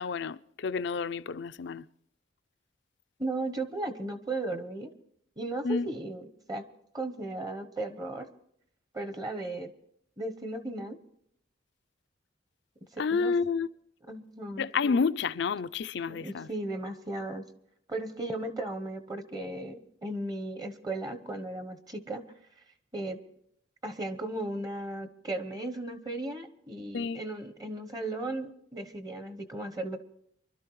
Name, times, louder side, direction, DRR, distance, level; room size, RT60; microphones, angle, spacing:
voice 1, 0.0-1.9 5.6-5.9 13.0-13.7 14.6-16.5 26.9-27.2, left 5 dB, 65° left, 0.4 m, -29 dB
voice 2, 3.2-4.9 5.4-6.6 6.9-8.3 8.9-9.7 10.2-11.0 12.9-13.3 14.1-14.7 16.1-17.4 17.9-22.2 22.9-23.2 23.8-30.0, right 2 dB, 20° right, 0.9 m, -36 dB
25.0 x 12.5 x 3.1 m
head